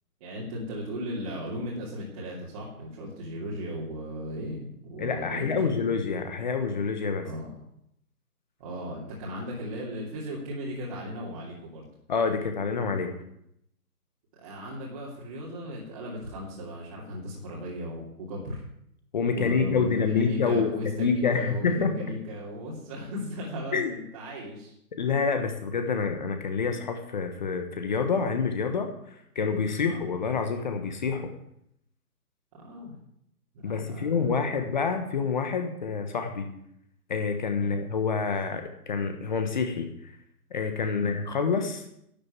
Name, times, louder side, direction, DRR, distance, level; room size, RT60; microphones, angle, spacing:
voice 1, 0.2-5.8 7.2-7.5 8.6-11.8 14.3-18.6 19.3-24.7 29.8-30.0 32.5-32.9 33.5-34.8 37.6-37.8 41.0-41.1, equal, 25° right, -6 dB, 2.7 m, -36 dB
voice 2, 5.0-7.3 12.1-13.1 19.1-21.9 23.7-23.9 25.0-28.9 29.3-31.3 33.6-36.5 37.1-40.1 40.5-41.8, left 5 dB, 30° left, 6 dB, 1.3 m, -27 dB
12.0 x 7.8 x 9.5 m, 0.75 s
hypercardioid pair, 165°, 46 cm